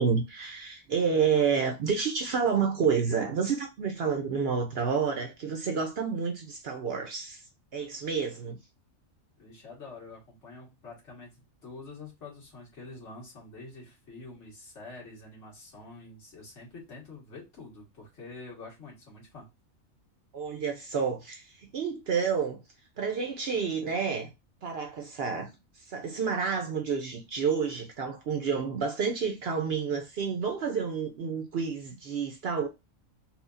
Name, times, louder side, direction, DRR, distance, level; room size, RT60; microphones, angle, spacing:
voice 1, 0.0-7.4 7.7-8.6 20.3-22.6 23.0-24.3 24.6-25.5 25.9-32.7, right 6 dB, 60° right, 0.7 m, -29 dB
voice 2, 9.4-11.4 11.6-19.5, left 3 dB, 60° left, 1.9 m, -46 dB
4.2 x 2.3 x 2.4 m
omnidirectional pair, 1.4 m